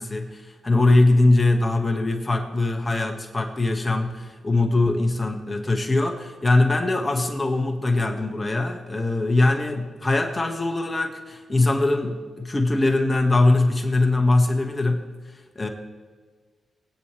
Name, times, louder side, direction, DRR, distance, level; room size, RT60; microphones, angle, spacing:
voice 1, 0.0-15.0 15.6-15.7, left 2 dB, 25° left, 3 dB, 1.9 m, -21 dB
22.5 x 9.4 x 3.5 m, 1.5 s
cardioid pair, 65°, 0 cm